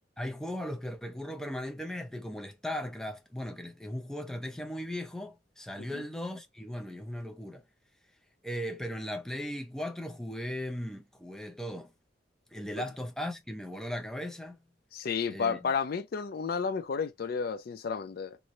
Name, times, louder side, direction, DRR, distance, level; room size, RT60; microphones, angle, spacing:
voice 1, 0.2-7.6 8.4-11.9 12.5-14.6 15.3-15.7, equal, 5° left, 0.5 m, -37 dB
voice 2, 14.9-18.4, left 5 dB, 55° left, 0.4 m, -32 dB
3.0 x 2.6 x 2.9 m
head